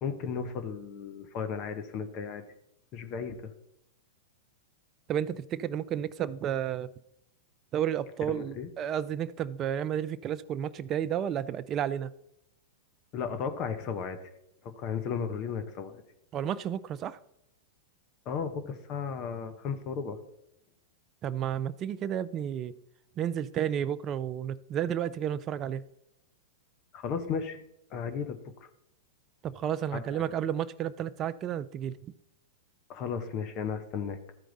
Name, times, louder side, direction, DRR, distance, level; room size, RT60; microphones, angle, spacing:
voice 1, 0.0-2.4 2.9-3.5 8.3-8.7 13.1-14.2 14.6-16.0 18.3-20.2 26.9-27.6 27.9-28.7 29.9-30.0 32.9-34.3, left 6 dB, 40° left, 0.9 m, -35 dB
voice 2, 5.1-6.9 7.7-12.1 16.3-17.2 21.2-22.7 23.2-25.8 29.4-32.1, right 10 dB, 35° right, 0.4 m, -32 dB
13.5 x 4.6 x 4.0 m
hypercardioid pair, 110°, 0 cm